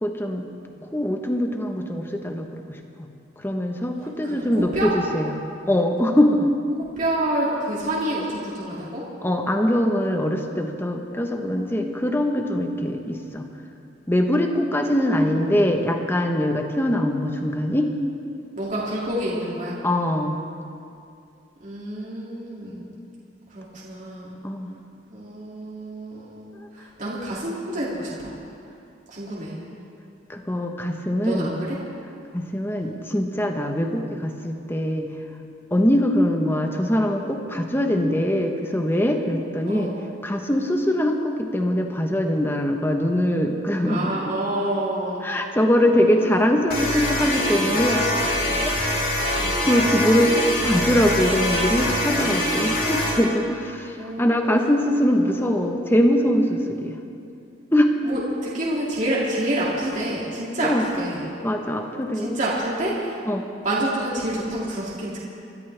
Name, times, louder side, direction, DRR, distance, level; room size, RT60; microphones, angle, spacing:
voice 1, 0.0-0.5 0.8-3.1 3.4-5.4 5.7-6.5 9.2-13.5 14.1-17.9 19.8-20.4 24.4-24.7 26.5-26.7 30.3-31.5 32.3-35.1 35.7-39.9 40.2-44.1 45.2-48.2 48.6-48.7 49.2-49.3 49.6-57.0 57.7-57.9 60.6-60.8 61.4-62.4 63.2-63.4, equal, 15° left, 3 dB, 1.0 m, -22 dB
voice 2, 4.2-4.9 7.0-9.0 15.1-15.6 18.6-19.8 21.6-22.8 23.5-24.4 25.1-26.5 26.7-28.3 29.1-29.6 31.2-31.8 32.8-33.0 39.6-40.0 43.9-45.2 49.4-49.6 54.0-54.5 55.1-55.8 58.0-60.7 61.0-61.3 62.2-63.2 63.6-65.2, right 1 dB, 45° right, -7 dB, 2.5 m, -28 dB
sound 1, 46.7-53.2, left 1 dB, 55° left, 3.6 m, -24 dB
26.0 x 13.0 x 3.4 m, 2.6 s
head